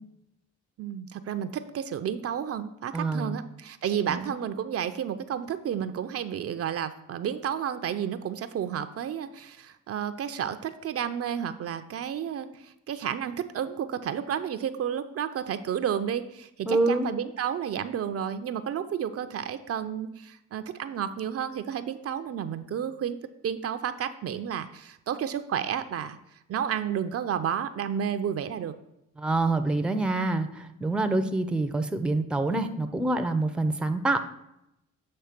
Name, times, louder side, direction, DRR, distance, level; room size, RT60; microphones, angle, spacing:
voice 1, 0.8-23.2 23.4-26.2 26.5-28.8, right 8 dB, 50° right, 10 dB, 0.5 m, -31 dB
voice 2, 2.9-3.4 4.1-4.4 16.7-17.1 29.2-34.2, right 2 dB, 5° right, 8 dB, 0.5 m, -26 dB
7.6 x 3.2 x 5.8 m, 0.86 s
cardioid pair, 90°, 30 cm